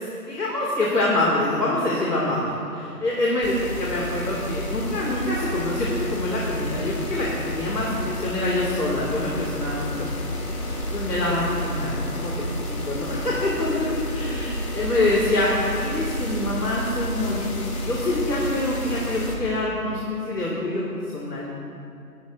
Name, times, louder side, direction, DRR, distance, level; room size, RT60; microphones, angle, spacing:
voice 1, 0.0-12.3 12.7-17.5 17.8-20.8 21.1-21.4, left 2 dB, 75° left, -4 dB, 2.6 m, -26 dB
sound 1, 3.4-19.4, equal, 60° left, 2.9 m, -30 dB
20.5 x 12.0 x 2.6 m, 2.5 s
figure-of-eight pair, 155°, 47 cm